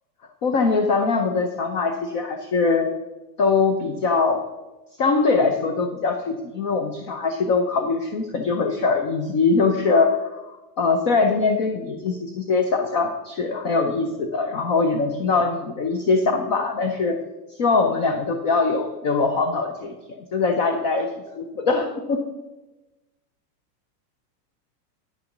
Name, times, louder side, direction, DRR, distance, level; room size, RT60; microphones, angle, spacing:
voice 1, 0.4-2.9 3.4-4.4 5.0-17.2 17.6-21.1 21.4-22.2, left 4 dB, 30° left, 5 dB, 0.5 m, -22 dB
9.6 x 6.7 x 5.9 m, 1.1 s
supercardioid pair, 180°, 48 cm